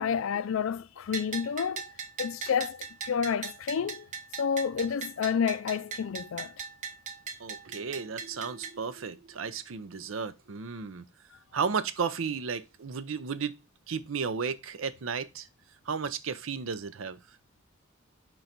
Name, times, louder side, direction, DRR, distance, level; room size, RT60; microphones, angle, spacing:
voice 1, 0.0-1.8 2.2-4.1 4.4-6.5, left 7 dB, 80° left, 0.4 m, -30 dB
Bell, 1.1-8.7, right 6 dB, 35° right, 0.6 m, -40 dB
voice 2, 7.4-11.1 11.5-13.6 13.9-15.5 15.9-17.2, right 5 dB, 80° right, 0.6 m, -33 dB
4.6 x 3.9 x 5.7 m
head